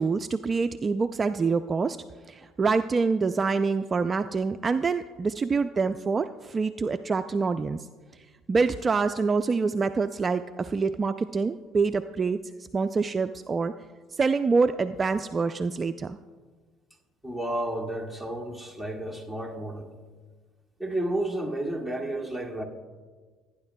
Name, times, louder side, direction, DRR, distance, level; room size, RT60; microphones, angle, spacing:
voice 1, 0.0-2.0 2.3-7.9 8.5-12.4 12.7-13.7 14.1-16.2, right 4 dB, 30° right, 0.3 m, -26 dB
voice 2, 17.2-19.9 20.8-22.6, right 1 dB, 10° left, 1.8 m, -31 dB
17.5 x 9.8 x 2.2 m
supercardioid pair, 75°, 0 cm